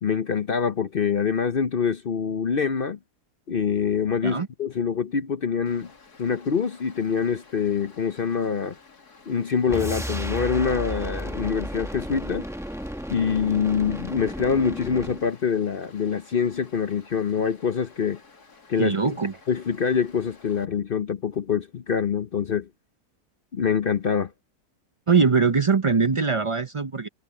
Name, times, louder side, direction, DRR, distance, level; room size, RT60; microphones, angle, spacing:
voice 1, 0.0-3.0 3.5-5.9 6.2-8.8 9.3-12.5 13.1-18.2 18.7-18.9 19.5-22.7 23.5-24.3, left 6 dB, 50° left, 0.6 m, -25 dB
Stream, 5.7-20.7, left 4 dB, 70° left, 3.2 m, -53 dB
sound 1, 9.7-15.3, equal, ahead, 1.0 m, -33 dB
voice 2, 18.8-19.4 25.1-27.1, right 5 dB, 50° right, 0.3 m, -22 dB
omnidirectional pair, 1.7 m